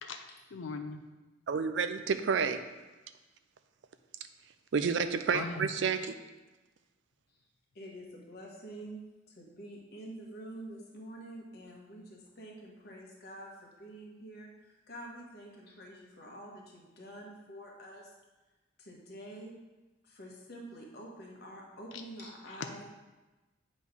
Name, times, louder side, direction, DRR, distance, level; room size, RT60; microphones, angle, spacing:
voice 1, 0.0-1.0 5.3-5.6 21.9-22.0 22.5-22.8, left 4 dB, 80° left, 6 dB, 0.5 m, -40 dB
voice 2, 1.5-2.6 4.7-6.1, right 5 dB, 65° right, 10 dB, 0.4 m, -30 dB
voice 3, 7.7-18.1 18.8-19.5 20.0-22.8, right 1 dB, 55° left, -1 dB, 1.3 m, -47 dB
8.4 x 3.1 x 5.2 m, 1.1 s
head